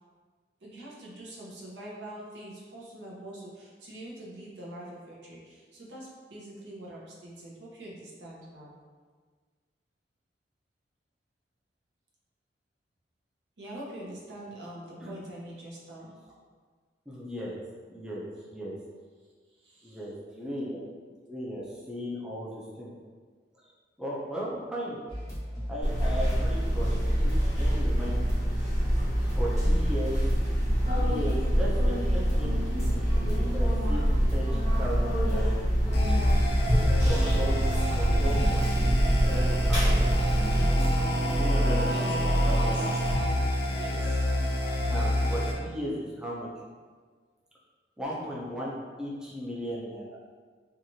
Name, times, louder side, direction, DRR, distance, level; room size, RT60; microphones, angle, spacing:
voice 1, 0.6-8.7 13.6-16.1 19.5-20.0 41.9-42.5 42.7-43.2 43.7-44.2, right 1 dB, 80° right, -5 dB, 0.7 m, -44 dB
voice 2, 17.1-17.5 17.9-18.7 19.8-20.9 21.2-22.9 23.6-23.7 24.0-25.0 25.7-26.9 27.1-28.3 29.3-30.2 30.9-36.2 37.1-37.7 37.9-38.9 39.3-40.1 41.3-41.9 42.4-42.8 44.8-46.5 48.0-48.7 49.0-50.2, equal, 5° right, -6 dB, 0.4 m, -36 dB
sound 1, 25.1-41.4, equal, 20° left, 1.0 m, -38 dB
sound 2, 25.8-40.6, equal, 40° right, 1.0 m, -26 dB
sound 3, 35.9-45.5, equal, 60° left, 0.5 m, -26 dB
2.9 x 2.3 x 2.6 m, 1.5 s
head